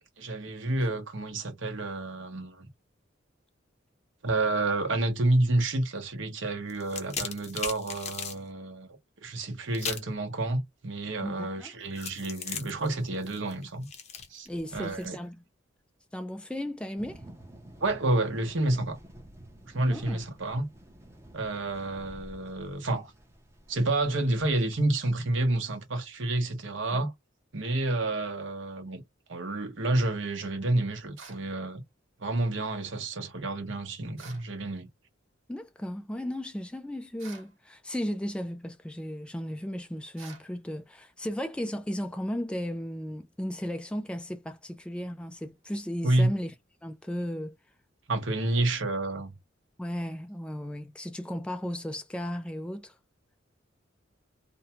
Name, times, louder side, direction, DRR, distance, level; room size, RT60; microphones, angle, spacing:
voice 1, 0.2-2.7 4.2-13.9 14.3-14.5 14.7-15.2 17.8-19.0 19.7-20.7 21.3-23.1 23.7-27.1 27.5-29.0 29.3-31.8 32.2-34.9 46.0-46.3 48.1-49.3, right 2 dB, 70° right, 0.9 m, -29 dB
sound 1, 6.7-8.4 9.7-10.2 12.0-15.1, left 6 dB, 35° left, 0.7 m, -38 dB
voice 2, 11.2-11.7 14.5-15.4 16.1-17.2 19.9-20.2 26.9-27.1 35.5-46.5 46.8-47.6 49.8-52.9, equal, 5° left, 0.3 m, -35 dB
sound 2, 17.0-25.0, right 1 dB, 15° right, 0.7 m, -51 dB
sound 3, 31.2-31.5 34.2-34.5 37.2-37.5 40.2-40.5, right 5 dB, 85° right, 1.2 m, -48 dB
2.7 x 2.2 x 2.8 m
head